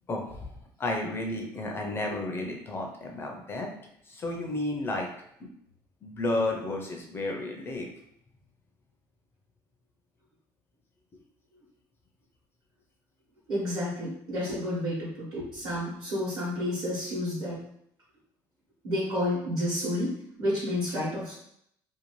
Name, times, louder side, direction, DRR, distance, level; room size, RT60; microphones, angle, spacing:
voice 1, 0.1-0.5 0.8-3.7 4.1-5.1 5.4-5.5 6.0-7.9, left 2 dB, 25° left, 2 dB, 0.4 m, -32 dB
voice 2, 13.5-17.6 18.8-21.3, left 1 dB, 55° right, -8 dB, 1.0 m, -30 dB
2.6 x 2.3 x 3.0 m, 0.72 s
cardioid pair, 140°, 9 cm